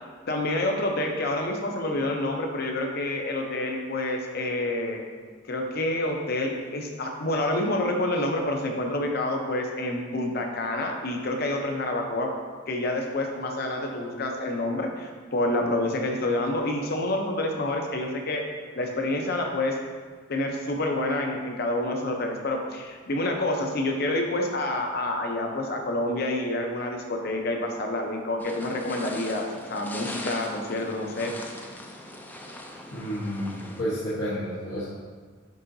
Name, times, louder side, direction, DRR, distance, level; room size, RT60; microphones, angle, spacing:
voice 1, 0.3-5.0 5.5-12.3 12.7-18.4 18.8-19.8 20.3-31.3, left 1 dB, 50° left, 2 dB, 0.7 m, -28 dB
sound 1, 28.4-33.8, left 1 dB, 10° left, 0.4 m, -40 dB
voice 2, 32.9-34.8, equal, 75° left, -10 dB, 1.2 m, -30 dB
10.5 x 3.8 x 2.7 m, 1.5 s
head